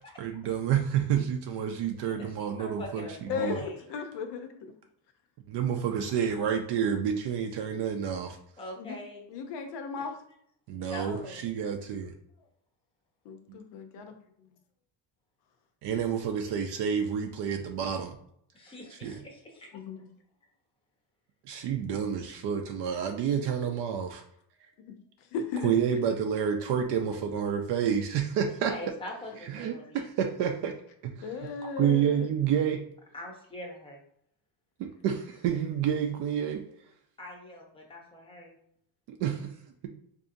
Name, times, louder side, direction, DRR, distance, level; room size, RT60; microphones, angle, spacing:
voice 1, 0.2-3.6 5.5-8.4 10.7-12.1 13.5-13.6 15.8-18.2 18.9-19.2 21.5-24.2 25.6-28.7 29.4-30.7 31.0-31.3 31.8-32.8 34.8-36.6 39.1-39.5, right 8 dB, 55° right, 4 dB, 0.5 m, -29 dB
voice 2, 2.2-3.8 8.6-9.3 10.0-10.1 10.8-11.4 18.5-19.7 22.3-22.4 28.7-30.1 33.1-34.0 37.2-38.6, left 1 dB, 10° left, 0 dB, 0.6 m, -43 dB
voice 3, 3.3-4.7 8.8-9.0 9.3-10.2 13.2-14.1 19.7-20.1 24.9-25.0 25.3-25.7 31.2-32.3, left 6 dB, 55° left, 6 dB, 0.7 m, -36 dB
4.7 x 2.7 x 2.6 m, 0.69 s
cardioid pair, 155°, 50 cm